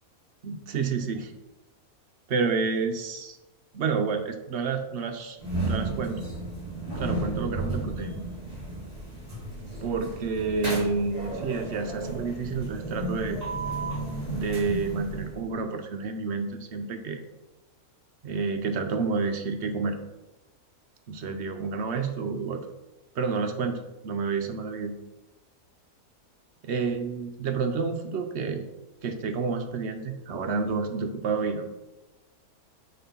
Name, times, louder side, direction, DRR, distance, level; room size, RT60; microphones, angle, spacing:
voice 1, 0.4-1.3 2.3-3.4 3.7-5.4 5.6-6.2 7.0-8.2 9.8-13.4 14.2-17.2 18.2-20.0 21.1-22.6 23.2-25.0 26.7-28.6 29.0-31.7, right 4 dB, 55° right, 6 dB, 0.9 m, -29 dB
sound 1, 5.4-15.6, right 2 dB, 35° right, 3.0 m, -33 dB
6.7 x 4.3 x 5.4 m, 1.0 s
omnidirectional pair, 1.6 m